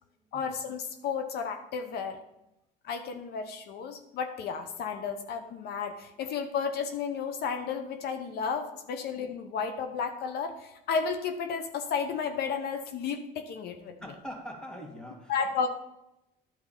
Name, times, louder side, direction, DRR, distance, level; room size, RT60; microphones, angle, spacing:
voice 1, 0.3-2.2 2.8-13.9 15.3-15.7, left 6 dB, 70° left, 7 dB, 1.0 m, -33 dB
voice 2, 14.0-15.7, equal, 5° left, 1 dB, 2.0 m, -43 dB
11.0 x 4.7 x 7.0 m, 0.88 s
cardioid pair, 110°, 17 cm